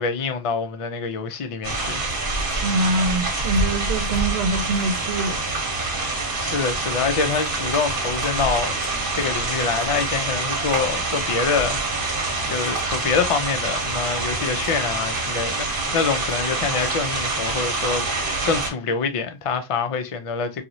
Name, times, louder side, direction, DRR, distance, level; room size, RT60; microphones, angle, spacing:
voice 1, 0.0-2.1 6.4-8.8 9.1-12.1 12.5-20.6, left 5 dB, 50° left, 0.4 m, -26 dB
sound 1, 1.6-18.7, right 2 dB, 60° right, 1.1 m, -26 dB
voice 2, 2.6-5.4, right 2 dB, 85° right, 0.9 m, -24 dB
3.0 x 2.4 x 2.5 m
omnidirectional pair, 1.0 m